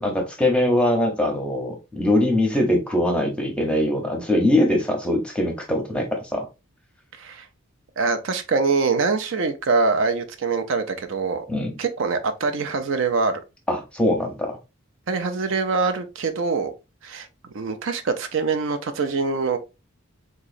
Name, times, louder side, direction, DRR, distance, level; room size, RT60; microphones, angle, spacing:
voice 1, 0.0-6.5 11.5-11.7 13.7-14.6, left 1 dB, 5° left, 0.7 m, -22 dB
voice 2, 7.1-7.5 8.0-11.5 11.8-13.4 15.1-16.7 17.0-17.3 17.5-19.6, right 4 dB, 65° right, 0.4 m, -24 dB
3.7 x 3.0 x 2.4 m
head